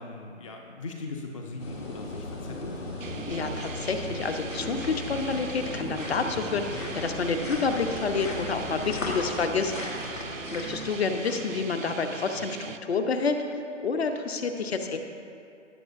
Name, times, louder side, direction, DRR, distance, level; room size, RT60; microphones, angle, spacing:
voice 1, 0.0-2.8 8.6-9.0, left 3 dB, 25° left, 2 dB, 0.5 m, -39 dB
sound 1, 1.6-12.0 12.5-12.6, left 2 dB, 80° left, 2.2 m, -36 dB
sound 2, 3.0-12.8, right 6 dB, 90° right, 0.6 m, -40 dB
voice 2, 3.3-10.1 10.5-13.4 13.8-15.0, left 4 dB, 55° left, 6 dB, 0.9 m, -29 dB
17.0 x 7.7 x 2.6 m, 2.4 s
figure-of-eight pair, 140°, 38 cm